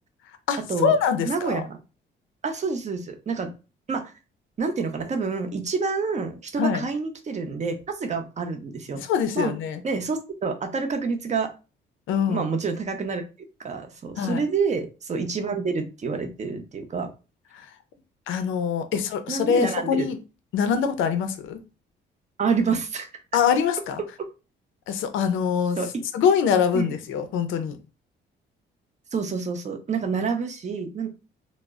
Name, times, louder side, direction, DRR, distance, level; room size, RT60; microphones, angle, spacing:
voice 1, 0.5-1.6 6.6-6.9 9.0-9.8 12.1-12.5 14.2-14.4 17.5-17.7 18.3-20.2 20.5-21.6 23.3-24.0 24.9-25.8 26.1-27.8, left 7 dB, 80° left, 9 dB, 0.5 m, -24 dB
voice 2, 1.3-1.8 2.4-3.5 3.9-4.0 4.6-9.0 9.4-9.5 9.8-11.5 12.3-13.2 13.6-17.1 19.3-20.1 22.4-23.1 25.8-26.0 26.7-26.9 29.1-31.1, right 5 dB, 35° right, 5 dB, 0.6 m, -28 dB
2.0 x 2.0 x 3.4 m, 0.31 s
cardioid pair, 90°, 20 cm